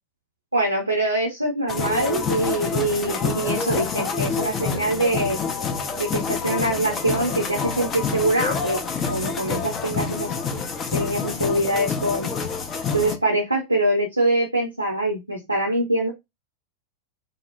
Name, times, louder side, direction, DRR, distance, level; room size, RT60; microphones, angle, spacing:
voice 1, 0.5-5.4 6.0-8.8 9.1-10.3 10.9-12.3 12.9-16.1, right 1 dB, 85° right, 0 dB, 0.6 m, -24 dB
sound 1, 1.7-13.2, left 5 dB, 25° left, 0.5 m, -27 dB
2.8 x 2.0 x 2.4 m, 0.20 s
figure-of-eight pair, 90°, 0 cm